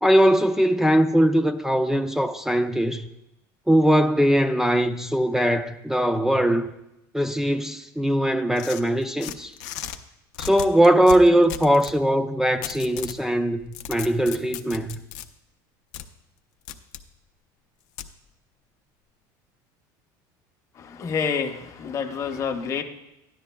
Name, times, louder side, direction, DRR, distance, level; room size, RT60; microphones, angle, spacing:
voice 1, 0.0-3.1 3.7-6.7 7.1-9.5 10.4-15.0, equal, 5° right, 0.3 m, -20 dB
sound 1, 8.6-10.0 10.3-12.0 12.6-13.2 13.6-15.3 15.9-16.1 16.7-17.0 18.0-18.1, left 10 dB, 85° left, 0.5 m, -36 dB
voice 2, 20.8-22.8, left 6 dB, 35° left, 0.8 m, -28 dB
12.5 x 10.5 x 2.2 m
cardioid pair, 130°, 9 cm